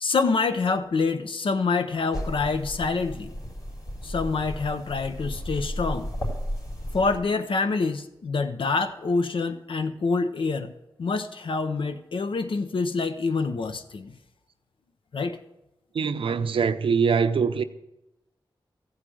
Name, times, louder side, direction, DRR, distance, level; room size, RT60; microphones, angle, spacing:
voice 1, 0.0-3.3 4.0-6.1 6.9-10.7 11.0-14.1 15.1-15.4, left 4 dB, 75° left, 0.6 m, -26 dB
sound 1, 2.1-7.2, equal, 45° left, 3.4 m, -34 dB
voice 2, 16.0-17.6, right 6 dB, 90° right, 0.5 m, -23 dB
14.5 x 4.8 x 7.7 m
wide cardioid pair, 80°, 9 cm